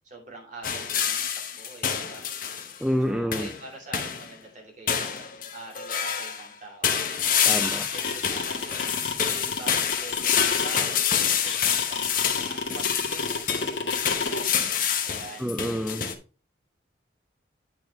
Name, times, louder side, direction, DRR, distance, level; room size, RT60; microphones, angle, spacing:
voice 1, 0.0-2.2 3.1-7.0 7.2-8.8 9.2-12.2 12.5-14.4 15.0-15.5, right 2 dB, 40° right, -1 dB, 2.8 m, -45 dB
sound 1, 0.6-2.8 3.3-3.6 3.9-4.3 4.9-6.5 6.8-16.1, left 8 dB, 45° left, 0.9 m, -27 dB
voice 2, 2.8-3.5 7.4-7.9 15.4-16.1, equal, 5° right, 6 dB, 0.4 m, -27 dB
sound 2, 7.7-14.4, left 4 dB, 75° left, 1.5 m, -29 dB
8.8 x 6.0 x 3.1 m, 0.36 s
head